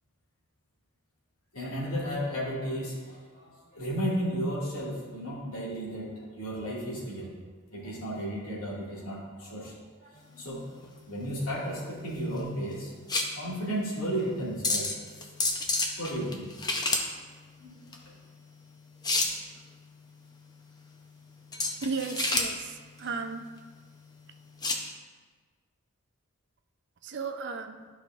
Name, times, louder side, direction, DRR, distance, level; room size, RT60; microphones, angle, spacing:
voice 1, 1.5-7.3 7.7-10.6 11.1-12.9 13.4-14.9 15.2-15.3 16.0-16.4 17.6-17.8, equal, 75° left, -6 dB, 2.3 m, -34 dB
sound 1, 10.2-24.9, left 2 dB, 20° left, 0.6 m, -33 dB
voice 2, 21.8-23.5 27.0-27.9, right 4 dB, 50° right, 6 dB, 0.5 m, -35 dB
13.0 x 4.8 x 2.5 m, 1.5 s
head